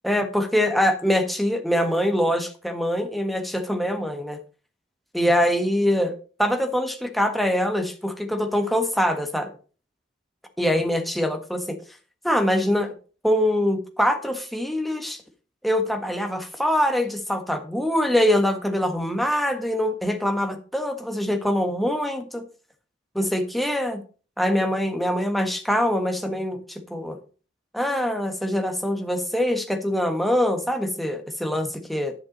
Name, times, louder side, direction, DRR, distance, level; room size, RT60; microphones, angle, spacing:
voice 1, 0.0-4.4 5.1-9.5 10.6-11.8 12.2-12.9 13.2-15.2 15.6-22.4 23.1-24.0 24.4-27.2 27.7-32.1, equal, ahead, 5 dB, 1.5 m, -24 dB
10.5 x 5.9 x 5.4 m, 0.37 s
head